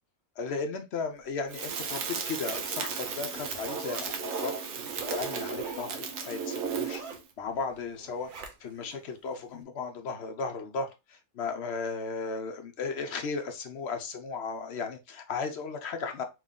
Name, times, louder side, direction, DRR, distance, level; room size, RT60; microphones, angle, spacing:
voice 1, 0.4-4.5 5.1-7.0 7.4-8.3 8.6-16.2, left 4 dB, 60° left, 0.8 m, -35 dB
Zipper (clothing), 1.3-8.9 9.4-9.5, right 5 dB, 45° right, 0.7 m, -46 dB
Crackle, 1.5-7.2, right 6 dB, 65° right, 1.1 m, -35 dB
3.8 x 2.6 x 3.6 m
omnidirectional pair, 1.5 m